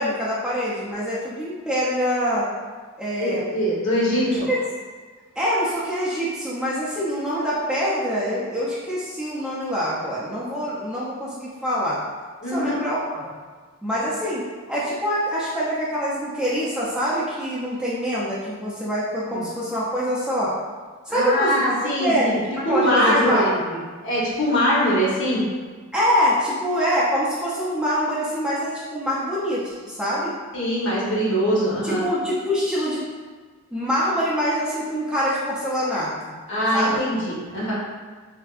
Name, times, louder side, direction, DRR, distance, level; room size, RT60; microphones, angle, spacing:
voice 1, 0.0-2.5 3.0-3.5 4.3-4.6 5.4-12.0 12.5-13.3 13.8-20.5 21.1-21.6 22.0-23.8 25.9-30.3 31.8-33.0 33.7-36.3 36.7-37.3, equal, 5° right, -9 dB, 0.4 m, -25 dB
voice 2, 3.2-4.3 12.4-12.8 19.3-19.4 21.1-22.4 22.6-23.5 24.0-25.4 30.5-32.0 36.5-37.7, equal, 60° left, -6 dB, 0.9 m, -22 dB
3.3 x 2.6 x 2.3 m, 1.5 s
head